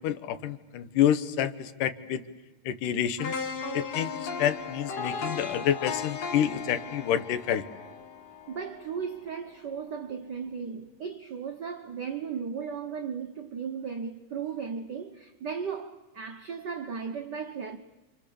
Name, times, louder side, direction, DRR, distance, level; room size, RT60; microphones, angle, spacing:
voice 1, 0.0-2.2 2.7-3.3 3.7-7.6, left 10 dB, 85° left, 2.7 m, -28 dB
sound 1, 3.2-9.2 9.6-9.7, left 5 dB, 50° left, 2.3 m, -36 dB
voice 2, 8.5-17.8, right 6 dB, 80° right, 0.9 m, -36 dB
29.0 x 26.0 x 7.0 m
omnidirectional pair, 3.6 m